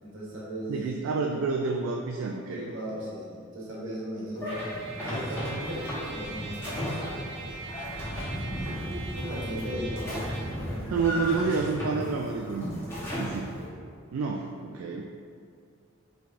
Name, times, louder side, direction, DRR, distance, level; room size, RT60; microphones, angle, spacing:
voice 1, 0.0-0.8 2.5-4.6 5.0-6.9 7.4-7.9 9.1-11.0 13.1-13.3, equal, 70° right, -5 dB, 1.1 m, -37 dB
voice 2, 0.7-2.7 10.9-12.7 13.2-13.5 14.1-15.1, right 4 dB, 85° right, 1 dB, 0.3 m, -29 dB
sound 1, 4.3-13.7, equal, 10° left, 1.1 m, -35 dB
Trumpet, 4.5-10.6, right 3 dB, 50° right, 0.7 m, -42 dB
5.7 x 3.3 x 2.5 m, 2.3 s
head